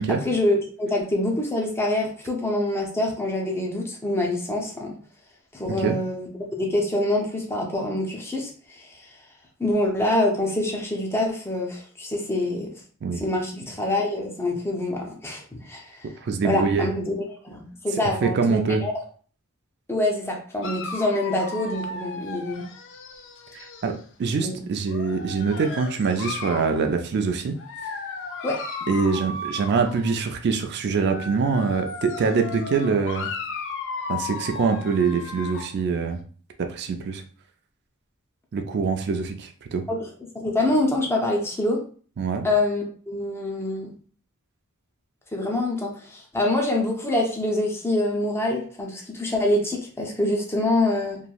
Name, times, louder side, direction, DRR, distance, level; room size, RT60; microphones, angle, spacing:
voice 1, 0.2-5.0 5.5-9.1 9.6-12.7 13.2-16.1 16.4-18.9 19.9-22.7 24.4-24.6 28.4-28.6 39.9-40.1 40.3-41.8 42.4-43.9 45.3-51.2, left 1 dB, 10° left, 0 dB, 0.6 m, -25 dB
voice 2, 16.2-16.9 18.2-18.8 23.5-23.9 24.2-27.6 28.9-33.3 34.1-36.2 36.6-37.2 38.5-39.8 42.2-42.5, right 5 dB, 50° right, 6 dB, 0.4 m, -24 dB
Dog, 20.6-24.0 24.8-26.8 27.6-30.2 30.9-35.8, left 4 dB, 60° left, 0.4 m, -35 dB
3.0 x 2.6 x 2.3 m, 0.43 s
head